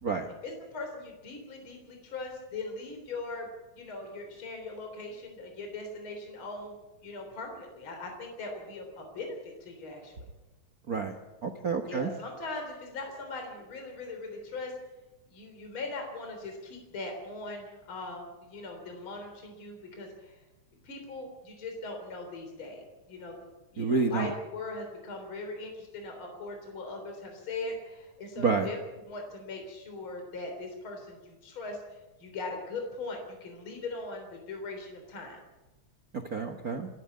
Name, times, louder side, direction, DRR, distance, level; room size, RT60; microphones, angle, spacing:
voice 1, 0.4-3.5 3.7-6.8 7.0-10.3 11.9-14.7 15.3-20.4 20.8-23.5 23.7-28.8 29.1-35.4, left 3 dB, 40° left, 3 dB, 4.3 m, -40 dB
voice 2, 11.4-12.1 23.8-24.3 28.4-28.7 36.3-36.9, right 4 dB, 45° right, 7 dB, 1.2 m, -28 dB
27.5 x 11.5 x 9.5 m, 1.1 s
omnidirectional pair, 3.4 m